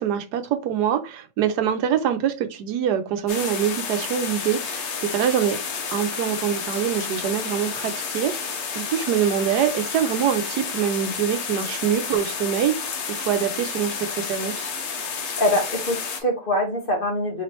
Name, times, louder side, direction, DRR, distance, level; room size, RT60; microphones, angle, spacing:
voice 1, 0.0-5.6 5.9-14.7, right 9 dB, 85° right, 1.2 m, -24 dB
sound 1, 3.3-16.2, left 6 dB, 55° left, 0.9 m, -31 dB
voice 2, 15.4-17.4, left 1 dB, 40° left, 1.1 m, -24 dB
4.4 x 3.1 x 2.9 m
omnidirectional pair, 1.7 m